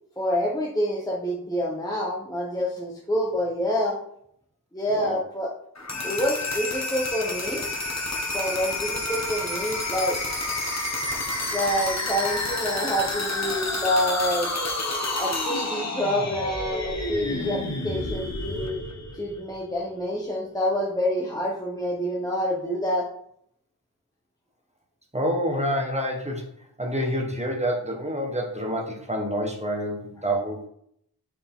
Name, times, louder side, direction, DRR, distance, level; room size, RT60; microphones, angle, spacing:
voice 1, 0.2-4.0 4.7-5.5 5.9-7.6 8.3-10.2 11.5-14.5 15.2-18.8 19.1-23.1, equal, 10° left, -4 dB, 1.1 m, -27 dB
sound 1, 5.7-19.6, left 2 dB, 40° left, 1.4 m, -29 dB
voice 2, 25.1-26.4 26.8-30.7, equal, 15° right, 0 dB, 1.4 m, -27 dB
6.4 x 4.8 x 3.8 m, 0.70 s
wide cardioid pair, 75°, 40 cm